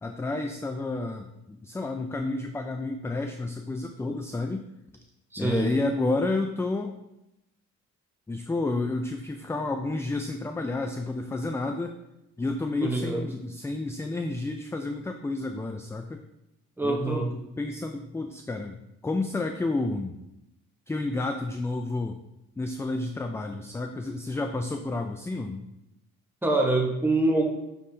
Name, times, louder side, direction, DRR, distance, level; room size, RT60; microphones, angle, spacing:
voice 1, 0.0-4.6 5.4-7.0 8.3-11.9 12.4-16.2 16.8-20.2 20.9-22.2 22.6-25.7, left 2 dB, 10° left, 5 dB, 0.3 m, -30 dB
voice 2, 5.3-5.7 12.8-13.3 16.8-17.3 26.4-27.5, right 2 dB, 5° right, 0 dB, 1.1 m, -25 dB
6.3 x 5.5 x 2.7 m, 0.89 s
cardioid pair, 90°, 30 cm